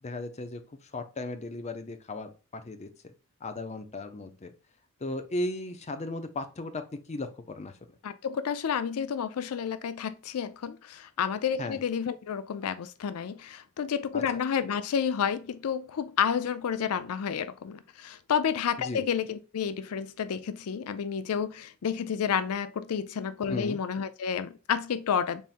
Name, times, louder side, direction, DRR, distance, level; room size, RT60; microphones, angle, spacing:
voice 1, 0.0-3.1 3.4-4.5 5.0-6.8 7.1-7.7 11.6-11.8 14.1-14.4 18.8-19.0 23.5-23.8, left 2 dB, 30° left, 0.5 m, -36 dB
voice 2, 8.0-25.4, left 7 dB, 90° left, 0.4 m, -30 dB
4.1 x 3.5 x 2.4 m
head